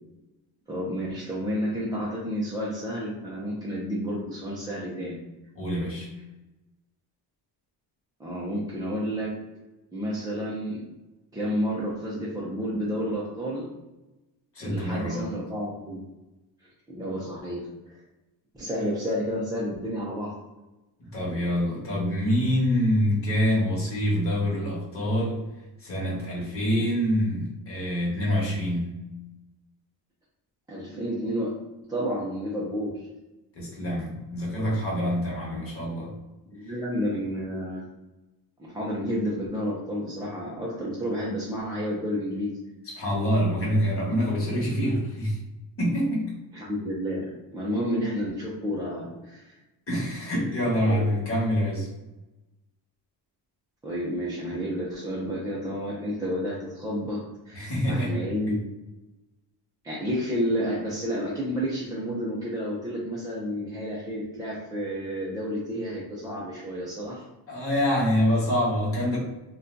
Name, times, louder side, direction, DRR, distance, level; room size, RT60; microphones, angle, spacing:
voice 1, 0.7-5.2 8.2-9.4 9.9-10.8 11.3-13.7 14.6-16.0 16.9-18.0 18.5-20.3 30.7-31.5 31.9-33.1 36.6-37.8 38.6-42.6 46.5-49.6 50.8-51.1 53.8-58.6 59.8-67.2, equal, 10° right, -6 dB, 0.4 m, -30 dB
voice 2, 5.5-6.1 14.5-15.3 21.0-25.4 25.8-29.0 33.5-36.1 42.9-45.4 45.8-46.3 49.9-51.9 57.5-58.5 67.5-69.2, equal, 30° left, -4 dB, 1.1 m, -26 dB
2.6 x 2.3 x 3.7 m, 1.0 s
cardioid pair, 145°, 42 cm